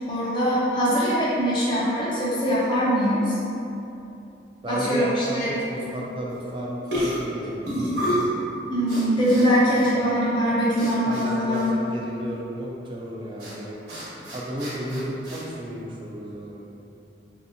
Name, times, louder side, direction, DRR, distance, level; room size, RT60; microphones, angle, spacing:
voice 1, 0.1-3.3 4.7-5.6 8.7-11.7, equal, 25° left, -8 dB, 0.6 m, -22 dB
voice 2, 4.6-7.9 9.9-10.1 11.0-13.8 14.3-16.6, right 1 dB, 25° right, -3 dB, 0.3 m, -33 dB
sound 1, 6.3-6.5 6.9-8.3 8.9-9.5 9.7-9.9 10.8-11.3 11.5-11.7 13.4-13.5 13.9-15.4, equal, 65° right, 1.1 m, -29 dB
3.2 x 2.7 x 2.6 m, 2.8 s
head